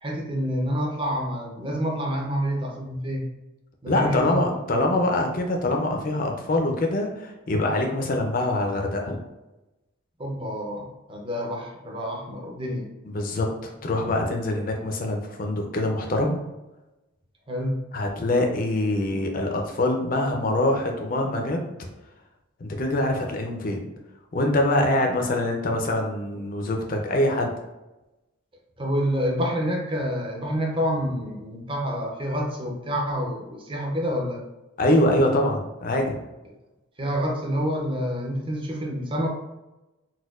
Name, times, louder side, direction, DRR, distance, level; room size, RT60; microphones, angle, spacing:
voice 1, 0.0-3.3 3.8-4.9 10.2-12.9 17.5-17.8 28.8-34.4 37.0-39.3, equal, 25° right, -1 dB, 0.5 m, -28 dB
voice 2, 3.9-9.2 13.1-16.4 17.9-21.6 22.6-23.8 24.3-27.5 34.8-36.2, left 1 dB, 40° left, 2 dB, 0.5 m, -24 dB
4.2 x 2.2 x 2.4 m, 1.0 s
head